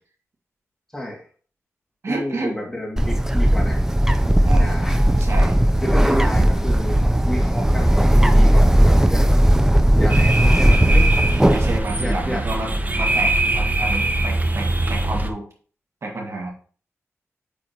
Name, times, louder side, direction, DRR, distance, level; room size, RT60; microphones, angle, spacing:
voice 1, 0.9-1.3 2.1-3.9 4.6-5.2 5.8-9.4 9.9-11.1 12.0-12.5, left 1 dB, 10° left, -2 dB, 2.3 m, -31 dB
voice 2, 2.0-2.5 4.4-4.8 5.2-5.6 11.5-15.5 16.0-16.5, right 2 dB, 60° right, 0 dB, 1.7 m, -29 dB
Bird, 3.0-11.8, right 1 dB, 10° right, 0.5 m, -16 dB
sound 1, 10.1-15.3, right 2 dB, 30° right, 0.8 m, -22 dB
8.6 x 3.8 x 2.9 m, 0.43 s
wide cardioid pair, 80°, 5 cm